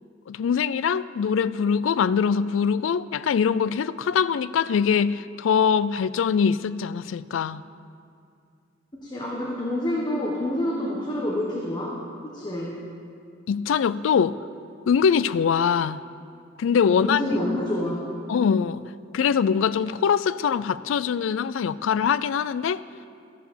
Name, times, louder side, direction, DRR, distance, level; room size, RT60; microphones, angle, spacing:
voice 1, 0.3-7.6 13.5-14.4 14.9-16.0 16.6-17.2 18.3-18.8 19.1-22.8, left 7 dB, 90° left, 16 dB, 0.3 m, -23 dB
voice 2, 8.9-12.8 16.9-18.0, left 1 dB, 25° left, -3 dB, 1.2 m, -28 dB
13.5 x 6.7 x 6.8 m, 2.4 s
head